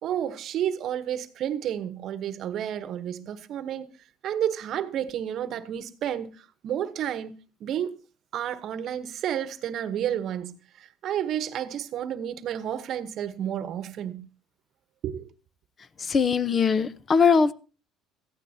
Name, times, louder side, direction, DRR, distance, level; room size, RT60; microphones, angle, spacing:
voice 1, 0.0-3.9 4.2-6.3 6.6-7.3 7.6-8.0 8.3-14.3 15.0-15.3, right 10 dB, 60° right, 1.0 m, -31 dB
voice 2, 16.1-17.5, left 5 dB, 35° left, 0.8 m, -21 dB
17.0 x 14.5 x 2.8 m
supercardioid pair, 95°, 0 cm